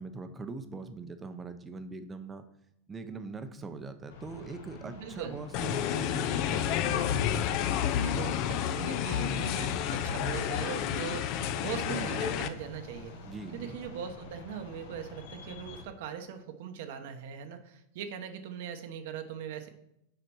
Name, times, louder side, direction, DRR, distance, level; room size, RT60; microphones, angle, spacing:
voice 1, 0.0-2.4 2.9-6.9 13.3-13.8, right 3 dB, 15° right, 9 dB, 0.7 m, -42 dB
sound 1, 4.1-15.8, left 2 dB, 80° left, 1.6 m, -48 dB
voice 2, 4.8-5.4 8.0-13.1 13.5-19.7, right 8 dB, 65° right, 6 dB, 1.0 m, -40 dB
sound 2, 5.5-12.5, left 9 dB, 45° left, 0.6 m, -30 dB
6.6 x 5.0 x 6.1 m, 0.81 s
supercardioid pair, 145°, 0 cm